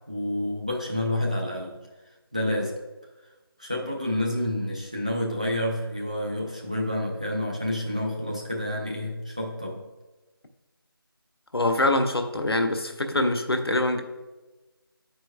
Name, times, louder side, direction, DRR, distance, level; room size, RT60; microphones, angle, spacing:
voice 1, 0.1-1.8 2.3-2.8 3.6-9.9, left 1 dB, 20° right, -1 dB, 0.4 m, -29 dB
voice 2, 11.5-14.0, left 1 dB, 85° left, 6 dB, 0.8 m, -24 dB
10.5 x 4.5 x 2.3 m, 1.1 s
figure-of-eight pair, 170°, 13 cm